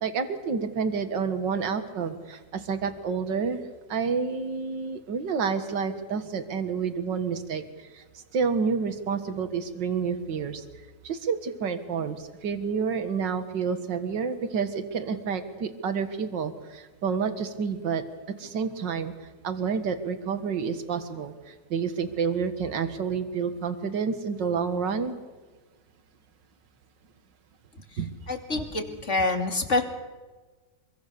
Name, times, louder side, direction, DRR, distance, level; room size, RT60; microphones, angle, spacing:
voice 1, 0.0-3.6 3.9-8.0 8.3-10.6 11.0-18.0 18.4-19.1 19.4-25.2 28.0-28.2, right 6 dB, 80° right, 9 dB, 2.3 m, -29 dB
voice 2, 28.3-29.8, left 3 dB, 40° left, 4 dB, 2.9 m, -26 dB
25.5 x 23.5 x 6.8 m, 1.3 s
omnidirectional pair, 1.9 m